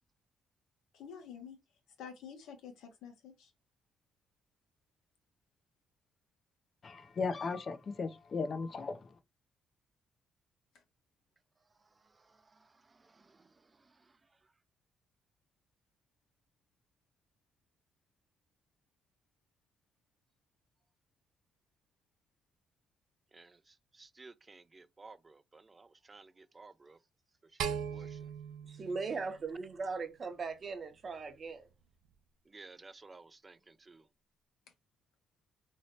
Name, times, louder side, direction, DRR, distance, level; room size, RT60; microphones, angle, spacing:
voice 1, 0.9-1.6 2.0-3.5, left 7 dB, 90° left, 1.0 m, -49 dB
voice 2, 6.8-9.1, left 4 dB, 45° left, 0.5 m, -36 dB
voice 3, 11.8-14.5 23.3-27.0 27.4-28.3 32.5-34.1, right 3 dB, 25° right, 0.3 m, -57 dB
sound 1, 27.6-30.0, right 7 dB, 85° right, 0.4 m, -40 dB
voice 4, 28.6-31.7, right 4 dB, 45° right, 0.7 m, -39 dB
3.0 x 2.8 x 2.8 m
cardioid pair, 90°, 0 cm